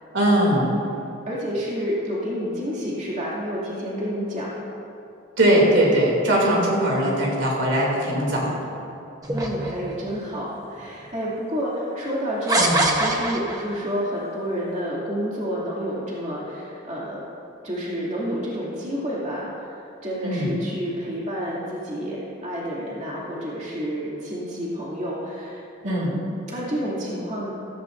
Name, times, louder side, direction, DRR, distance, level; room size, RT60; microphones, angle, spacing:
voice 1, 0.1-0.7 5.4-8.5 12.6-12.8 20.2-20.5 25.8-26.1, right 1 dB, 70° right, -3 dB, 2.8 m, -20 dB
voice 2, 1.3-4.5 9.3-17.2 17.6-19.8 20.0-27.5, equal, 35° right, -7 dB, 2.6 m, -29 dB
sound 1, 9.2-10.2 11.0-11.1 12.5-13.8, right 1 dB, 20° right, 1.0 m, -23 dB
15.5 x 15.0 x 2.6 m, 2.7 s
head